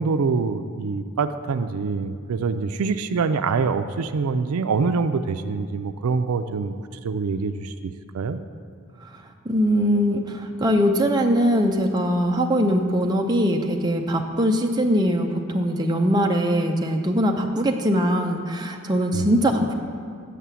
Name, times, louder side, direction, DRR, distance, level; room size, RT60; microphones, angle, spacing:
voice 1, 0.0-6.8 7.0-7.7 8.1-8.4 19.1-19.3, right 4 dB, 85° right, 10 dB, 0.4 m, -25 dB
voice 2, 9.5-19.7, equal, 20° right, 2 dB, 0.5 m, -21 dB
7.5 x 6.5 x 6.9 m, 2.2 s
head